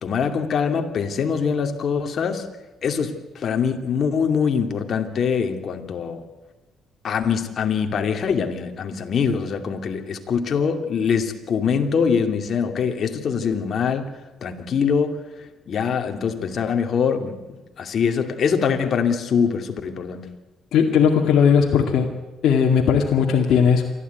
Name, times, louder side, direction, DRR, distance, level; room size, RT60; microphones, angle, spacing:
voice 1, 0.0-2.5 2.8-6.2 7.0-14.1 14.4-15.2 15.7-20.3, left 6 dB, 55° left, 5 dB, 2.6 m, -23 dB
voice 2, 20.7-22.1 22.4-23.9, left 7 dB, 75° left, 1 dB, 2.2 m, -17 dB
28.0 x 12.5 x 9.4 m, 1.1 s
cardioid pair, 90°, 0 cm